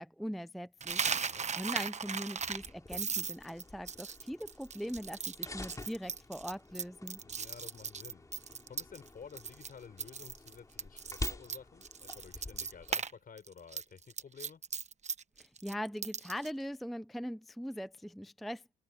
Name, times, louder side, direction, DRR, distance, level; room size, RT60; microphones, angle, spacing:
voice 1, 0.0-7.2 15.4-18.7, equal, ahead, 0.4 m, -41 dB
Coin (dropping), 0.8-9.1 9.4-9.7 10.0-13.1 13.4-16.5, right 6 dB, 35° right, 1.2 m, -37 dB
voice 2, 1.0-1.5 7.2-8.3 8.6-14.6, left 6 dB, 45° left, 6.5 m, -53 dB
sound 1, 2.4-12.9, left 2 dB, 15° left, 2.9 m, -48 dB
cardioid pair, 90°, 20 cm